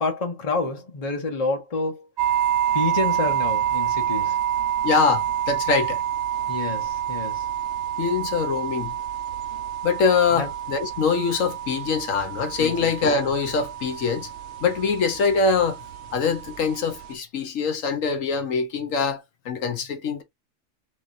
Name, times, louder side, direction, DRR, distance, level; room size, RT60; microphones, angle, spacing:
voice 1, 0.0-2.0 2.7-4.4 6.5-7.4 10.3-10.5 12.6-12.9, left 3 dB, 30° left, 1.0 m, -28 dB
sound 1, 2.2-17.1, right 11 dB, 60° right, 0.9 m, -28 dB
voice 2, 4.8-6.0 8.0-9.0 9.8-14.3 14.6-15.8 16.1-20.2, left 5 dB, 75° left, 1.2 m, -23 dB
3.8 x 3.3 x 2.5 m
omnidirectional pair, 1.4 m